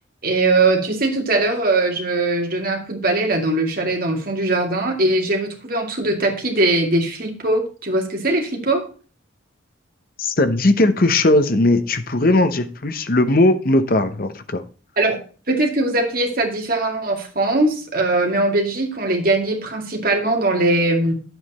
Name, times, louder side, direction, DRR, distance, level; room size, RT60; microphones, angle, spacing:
voice 1, 0.2-8.8 15.0-15.2 15.5-21.1, right 2 dB, 45° right, 2 dB, 2.2 m, -20 dB
voice 2, 10.2-14.6, left 2 dB, 45° left, 9 dB, 0.9 m, -18 dB
9.7 x 8.0 x 4.2 m, 0.36 s
head